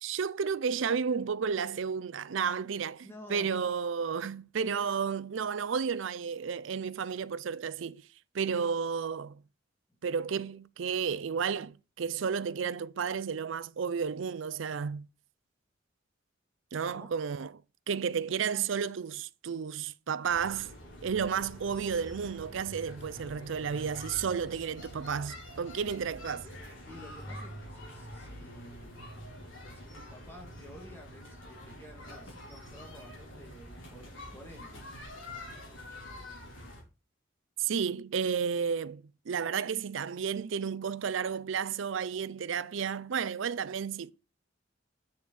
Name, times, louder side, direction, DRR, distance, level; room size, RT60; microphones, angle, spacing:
voice 1, 0.0-8.0 8.3-9.4 10.0-15.1 16.7-17.5 17.9-20.7 21.0-26.5 37.6-44.1, right 6 dB, 70° right, 0.5 m, -32 dB
voice 2, 3.0-3.6 16.8-17.1 26.8-28.9 29.7-35.0, equal, 10° left, 2.4 m, -51 dB
sound 1, 20.2-36.8, equal, 65° left, 4.8 m, -46 dB
7.9 x 7.0 x 4.1 m
head